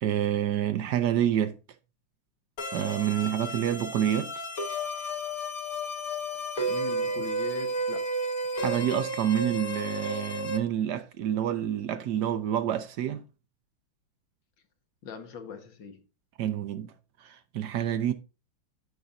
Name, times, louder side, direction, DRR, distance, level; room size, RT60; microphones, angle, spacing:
voice 1, 0.0-1.6 2.7-4.3 8.6-13.2 16.4-16.9 17.2-18.1, right 10 dB, 65° right, 1.1 m, -28 dB
sound 1, 2.6-10.6, right 1 dB, 50° left, 1.6 m, -32 dB
voice 2, 6.7-8.1 15.0-16.0, left 5 dB, 65° left, 2.0 m, -40 dB
14.5 x 5.4 x 2.6 m
omnidirectional pair, 2.3 m